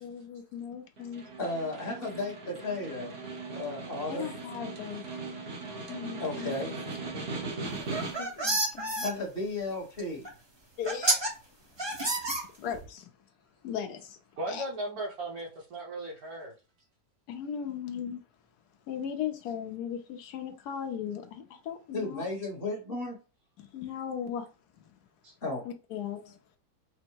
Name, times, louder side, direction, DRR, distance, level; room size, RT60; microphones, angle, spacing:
voice 1, 0.0-1.2 2.0-2.2 4.1-5.0 5.9-6.8 7.9-9.0 10.8-11.2 11.7-11.9 12.6-13.1 13.6-14.2 14.5-14.6 17.3-18.2 18.9-22.2 23.6-24.5 24.7-24.9 25.6-26.4, left 8 dB, 70° left, 1.2 m, -38 dB
Snare drum, 1.0-8.5, right 3 dB, 45° right, 1.0 m, -39 dB
voice 2, 1.4-3.1 3.5-4.3 6.2-6.7 9.0-10.3 21.9-23.2 25.4-25.6, left 2 dB, 35° left, 1.1 m, -34 dB
sound 1, 7.8-9.1 10.2-10.3 10.8-11.3 11.8-12.9, right 2 dB, 25° right, 0.6 m, -29 dB
voice 3, 14.4-16.5 25.2-25.3, right 1 dB, 60° right, 1.4 m, -37 dB
4.4 x 2.0 x 4.5 m
omnidirectional pair, 1.9 m